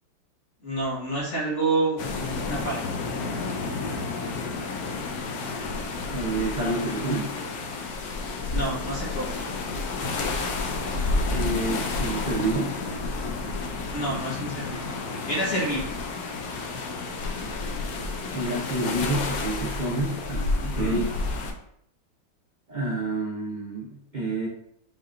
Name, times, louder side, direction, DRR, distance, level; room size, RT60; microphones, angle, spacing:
voice 1, 0.6-2.8 3.7-4.0 8.5-9.3 13.9-14.9 15.3-15.9 20.6-21.0, right 2 dB, 40° left, -6 dB, 1.8 m, -29 dB
sound 1, 2.0-21.5, left 3 dB, 65° left, 1.0 m, -30 dB
voice 2, 6.1-7.3 11.3-12.8 18.3-21.1 22.7-24.5, right 2 dB, 50° right, -4 dB, 0.5 m, -28 dB
5.7 x 3.6 x 2.6 m, 0.70 s
omnidirectional pair, 2.0 m